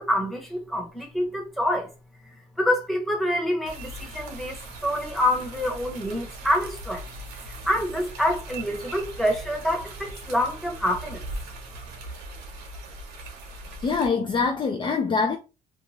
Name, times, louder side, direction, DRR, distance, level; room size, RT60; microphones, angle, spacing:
voice 1, 0.0-1.9 2.6-7.0 7.4-11.2, equal, ahead, 1.0 m, -26 dB
sound 1, 3.7-14.1, right 1 dB, 90° right, 0.9 m, -40 dB
voice 2, 13.8-15.4, left 5 dB, 30° left, 0.4 m, -24 dB
2.6 x 2.3 x 3.1 m
cardioid pair, 110°, 17 cm